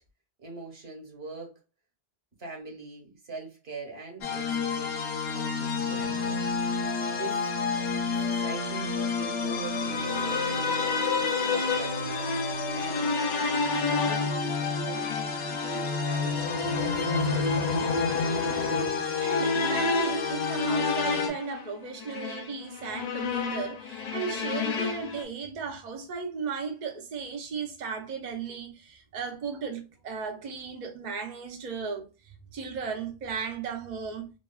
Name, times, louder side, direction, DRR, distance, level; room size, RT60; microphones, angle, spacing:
voice 1, 0.4-1.6 2.4-4.5 4.7-6.4 7.1-7.5 8.1-10.7 11.1-12.3 12.7-13.1 13.8-16.4 16.8-18.0, right 3 dB, 70° right, 1.3 m, -43 dB
sound 1, 4.2-21.3, left 5 dB, 75° left, 1.0 m, -30 dB
sound 2, 9.7-25.2, left 3 dB, 55° left, 0.5 m, -31 dB
voice 2, 19.2-34.3, right 5 dB, 50° right, 0.6 m, -35 dB
3.0 x 2.2 x 2.2 m
omnidirectional pair, 1.1 m